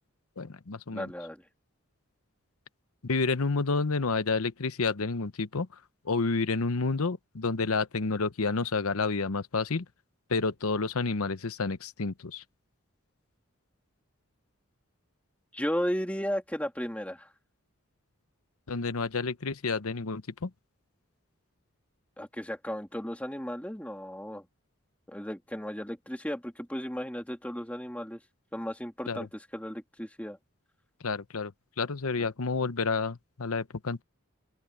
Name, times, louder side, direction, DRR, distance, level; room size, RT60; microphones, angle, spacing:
voice 1, 0.4-1.1 3.0-5.7 6.0-9.8 10.3-12.4 18.7-20.5 29.1-29.3 31.0-31.5 31.8-34.0, left 4 dB, 80° left, 0.9 m, -29 dB
voice 2, 0.9-1.4 15.5-17.3 22.2-24.5 25.1-28.2 28.5-30.4, equal, 5° left, 2.3 m, -35 dB
open air
head